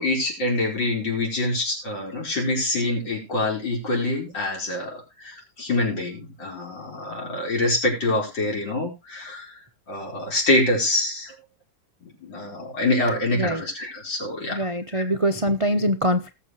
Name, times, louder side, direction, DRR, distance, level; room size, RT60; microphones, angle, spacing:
voice 1, 0.0-5.0 5.2-9.5 9.9-11.3 12.0-14.6 14.9-15.0, left 2 dB, 70° left, -1 dB, 5.2 m, -25 dB
voice 2, 14.5-16.3, equal, 60° right, 8 dB, 0.3 m, -23 dB
19.0 x 7.5 x 3.0 m, 0.26 s
omnidirectional pair, 2.1 m